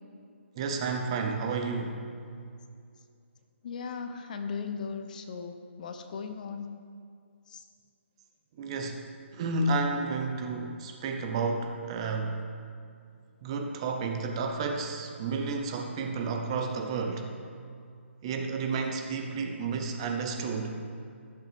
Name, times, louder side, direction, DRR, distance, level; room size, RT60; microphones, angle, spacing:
voice 1, 0.6-2.0 8.6-12.4 13.4-17.3 18.2-20.8, right 4 dB, 25° right, 4 dB, 0.7 m, -31 dB
voice 2, 3.6-6.8 7.5-7.6, left 5 dB, 35° left, 7 dB, 0.6 m, -37 dB
16.0 x 6.6 x 3.5 m, 2.3 s
hypercardioid pair, 165°, 7 cm